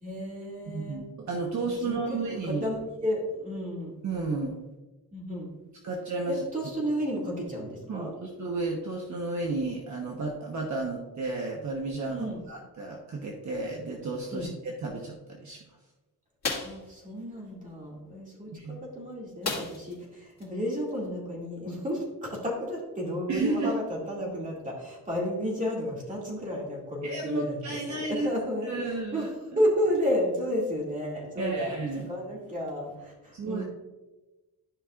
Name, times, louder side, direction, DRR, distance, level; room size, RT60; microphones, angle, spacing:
voice 1, 0.0-1.0 1.7-2.2 2.4-3.9 5.1-5.5 6.3-8.1 12.1-12.4 14.3-14.5 16.6-27.8 28.1-28.7 29.1-29.3 29.6-31.7 32.1-33.6, equal, 20° right, -3 dB, 2.2 m, -32 dB
voice 2, 0.7-2.6 4.0-4.6 5.8-6.4 7.9-15.6 18.5-18.8 23.3-23.7 27.0-28.3 28.7-29.6 31.4-32.1 33.3-33.6, right 3 dB, 50° right, 0 dB, 1.0 m, -32 dB
sound 1, 16.4-16.8 19.4-20.0 20.4-20.5 20.9-21.1, left 4 dB, 45° left, 2.1 m, -32 dB
13.0 x 5.4 x 2.4 m, 1.1 s
wide cardioid pair, 165°, 38 cm